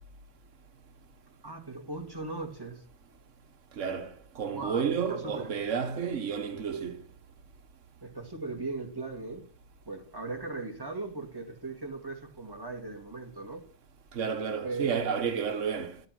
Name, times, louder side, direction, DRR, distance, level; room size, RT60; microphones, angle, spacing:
voice 1, 1.4-2.8 4.5-4.8 5.1-5.5 8.0-9.5 9.9-13.6 14.6-15.2, right 3 dB, 20° right, 2.2 m, -38 dB
voice 2, 3.8-7.0 14.1-16.0, right 6 dB, 80° right, 1.4 m, -31 dB
12.0 x 9.6 x 6.0 m
omnidirectional pair, 1.3 m